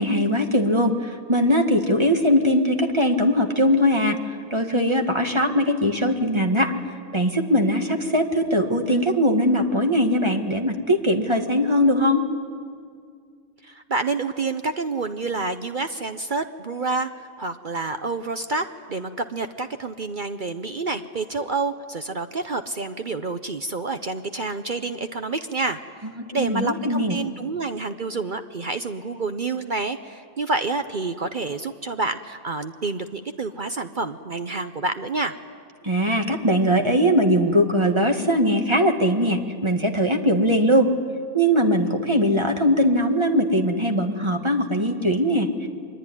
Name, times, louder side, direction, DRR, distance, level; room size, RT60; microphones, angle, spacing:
voice 1, 0.0-6.7 7.1-12.2 26.3-27.2 35.8-40.9 41.3-45.7, equal, 20° right, 4 dB, 1.6 m, -20 dB
voice 2, 13.6-26.1 26.3-35.3, right 3 dB, 45° right, 8 dB, 0.7 m, -28 dB
24.0 x 22.5 x 9.9 m, 2.2 s
omnidirectional pair, 1.6 m